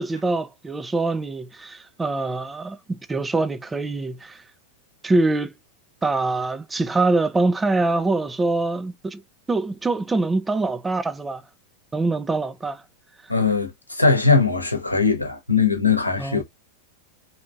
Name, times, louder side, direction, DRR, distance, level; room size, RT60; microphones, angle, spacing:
voice 1, 0.0-4.4 5.0-5.5 6.0-9.2 9.5-11.4 11.9-12.8 16.2-16.4, right 3 dB, 10° right, 0.3 m, -24 dB
voice 2, 13.3-16.4, left 4 dB, 85° left, 0.9 m, -20 dB
3.4 x 2.7 x 2.4 m
figure-of-eight pair, 90°, 0 cm